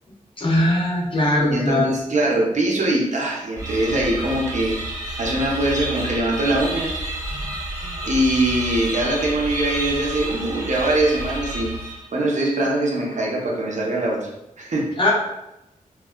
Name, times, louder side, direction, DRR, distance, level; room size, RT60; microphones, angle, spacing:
voice 1, 0.4-1.9 7.3-7.4 7.8-7.9 15.0-15.1, left 1 dB, 35° left, -3 dB, 0.7 m, -20 dB
voice 2, 1.5-4.8 5.2-6.9 8.1-11.7 12.1-14.3 14.6-14.9, right 1 dB, 60° right, -2 dB, 0.6 m, -22 dB
sound 1, 3.6-12.3, right 1 dB, 25° right, 1.1 m, -30 dB
3.5 x 2.2 x 2.2 m, 0.88 s
wide cardioid pair, 110°, 14 cm